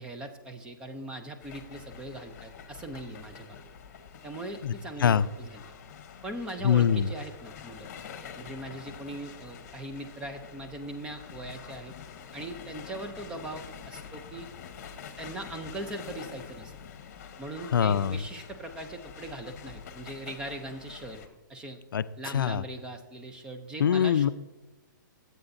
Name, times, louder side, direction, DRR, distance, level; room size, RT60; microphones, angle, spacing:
voice 1, 0.0-3.6 4.2-5.6 6.2-7.9 8.4-11.9 12.3-14.5 15.2-16.7 17.4-21.2 21.5-21.8 22.2-24.3, right 1 dB, 10° right, 6 dB, 0.5 m, -40 dB
sound 1, 1.4-21.3, left 7 dB, 45° left, 1.0 m, -46 dB
voice 2, 6.6-7.1 17.7-18.2 21.9-22.0 22.3-22.6 23.8-24.3, left 8 dB, 85° left, 15 dB, 0.4 m, -23 dB
14.0 x 7.9 x 2.6 m, 1.1 s
hypercardioid pair, 160°, 11 cm